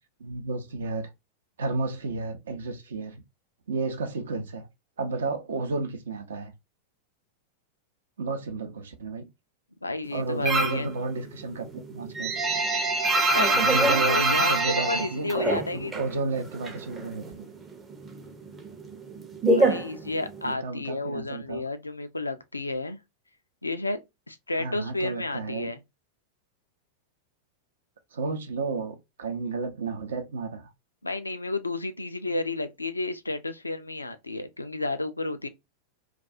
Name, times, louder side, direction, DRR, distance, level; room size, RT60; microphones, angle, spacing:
voice 1, 0.2-1.1 1.6-3.2 3.7-4.7 5.0-6.5 8.2-9.3 10.1-12.3 13.5-15.3 15.7-17.4 20.4-21.6 24.6-25.7 28.1-30.7, right 3 dB, 65° right, 0.6 m, -32 dB
voice 2, 9.8-10.9 13.3-13.6 14.0-16.0 19.5-23.0 23.6-24.0 24.3-25.8 31.0-35.5, left 2 dB, 80° left, 0.3 m, -31 dB
sound 1, 10.5-10.9 11.2-16.1 16.4-17.4 17.7-20.5, right 2 dB, 15° right, 0.5 m, -24 dB
2.3 x 2.2 x 2.4 m
figure-of-eight pair, 90°, 0 cm